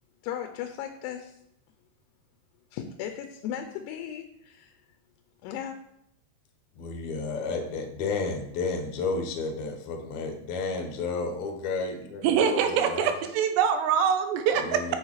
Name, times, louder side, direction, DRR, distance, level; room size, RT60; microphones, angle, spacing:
voice 1, 0.2-1.4 2.7-4.8 5.4-5.8, left 9 dB, 80° left, 6 dB, 2.7 m, -36 dB
voice 2, 6.8-13.1 14.6-15.0, left 4 dB, 65° left, 3 dB, 2.0 m, -32 dB
voice 3, 12.2-15.0, right 8 dB, 85° right, 7 dB, 2.9 m, -24 dB
7.9 x 6.0 x 4.8 m, 0.76 s
omnidirectional pair, 4.8 m